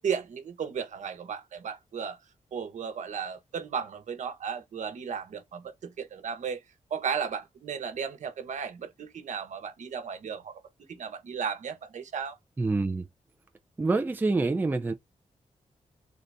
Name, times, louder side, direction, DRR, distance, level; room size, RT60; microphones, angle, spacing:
voice 1, 0.0-2.2 2.5-6.6 6.9-10.6 10.9-12.4, right 6 dB, 70° right, 1.1 m, -35 dB
voice 2, 12.6-13.1 13.8-14.9, right 3 dB, 15° right, 0.4 m, -26 dB
4.0 x 3.9 x 3.4 m
wide cardioid pair, 165°, 13 cm